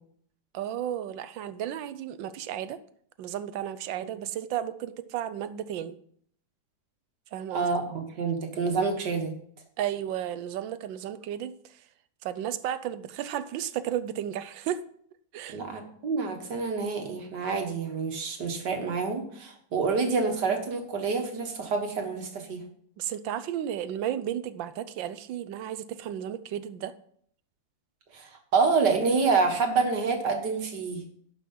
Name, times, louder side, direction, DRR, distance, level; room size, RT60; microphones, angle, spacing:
voice 1, 0.5-2.8 3.2-6.0 7.3-7.7 9.8-11.8 12.2-14.8 15.3-15.6 23.0-26.9, right 10 dB, 85° right, 13 dB, 1.4 m, -33 dB
voice 2, 7.5-9.4 15.5-22.6 28.1-31.0, right 4 dB, 65° right, 4 dB, 2.2 m, -27 dB
11.5 x 6.1 x 5.5 m, 0.63 s
omnidirectional pair, 2.0 m